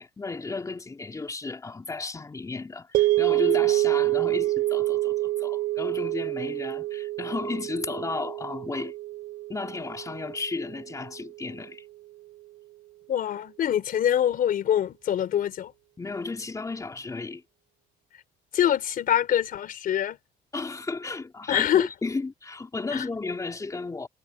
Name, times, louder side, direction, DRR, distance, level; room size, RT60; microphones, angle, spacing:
voice 1, 0.0-8.9 9.5-11.9 16.0-17.4 20.5-24.1, left 3 dB, 20° left, 3.3 m, -34 dB
sound 1, 2.9-11.2, right 16 dB, 85° right, 2.7 m, -27 dB
voice 2, 13.1-15.7 18.5-20.2 21.5-21.9 22.9-23.0, left 10 dB, 55° left, 4.5 m, -24 dB
cardioid pair, 110°, 17 cm